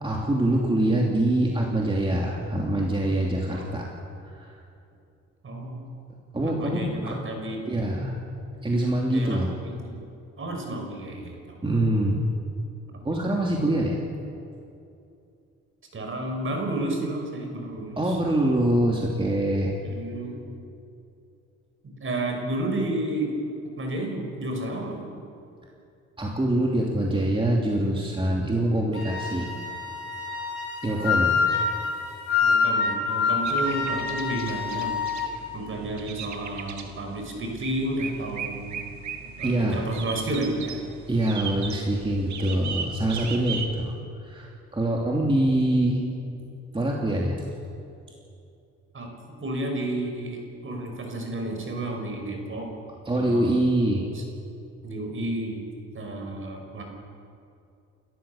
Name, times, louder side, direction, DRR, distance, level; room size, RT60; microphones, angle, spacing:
voice 1, 0.0-3.9 4.2-4.6 6.3-7.2 7.7-8.2 8.6-9.5 11.6-12.2 13.0-14.0 18.0-19.7 26.2-29.5 30.8-31.3 39.4-39.8 41.1-43.9 44.2-46.0 46.7-47.4 53.0-54.0, right 1 dB, 15° right, -2 dB, 2.9 m, -24 dB
voice 2, 3.5-3.8 5.4-5.8 6.4-7.6 9.1-9.9 10.4-11.6 12.9-13.1 13.6-13.7 15.9-18.2 19.8-20.5 22.0-23.3 23.8-25.1 32.4-34.9 35.5-38.7 39.4-40.8 48.9-52.7 53.1-53.6 54.1-54.2 54.8-55.6 55.9-56.8, right 1 dB, 45° right, 2 dB, 5.9 m, -31 dB
Wind instrument woodwind instrument, 28.9-35.3, left 5 dB, 55° left, 7.5 m, -26 dB
sound 1, 33.4-43.7, right 6 dB, 70° right, 2.3 m, -38 dB
29.5 x 14.0 x 7.2 m, 2.6 s
cardioid pair, 90°, 30 cm